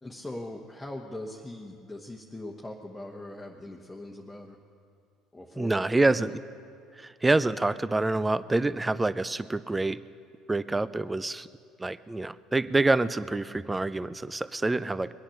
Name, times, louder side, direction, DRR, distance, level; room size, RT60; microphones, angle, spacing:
voice 1, 0.0-4.6 5.3-6.3, left 1 dB, 10° left, -1 dB, 1.3 m, -41 dB
voice 2, 5.6-6.4 7.0-10.0 10.5-11.5 11.8-15.1, right 2 dB, 15° right, 16 dB, 0.5 m, -26 dB
22.0 x 8.8 x 6.5 m, 2.5 s
hypercardioid pair, 75°, 0 cm